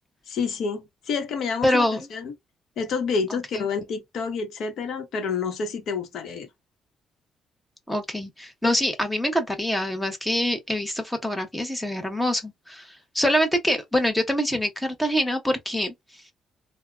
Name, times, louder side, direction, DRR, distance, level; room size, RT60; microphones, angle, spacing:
voice 1, 0.3-2.3 2.8-6.5, left 5 dB, 75° left, 1.0 m, -29 dB
voice 2, 1.6-2.0 3.5-3.6 7.9-15.9, equal, 10° left, 1.1 m, -25 dB
3.3 x 2.3 x 2.3 m
cardioid pair, 90°, 0 cm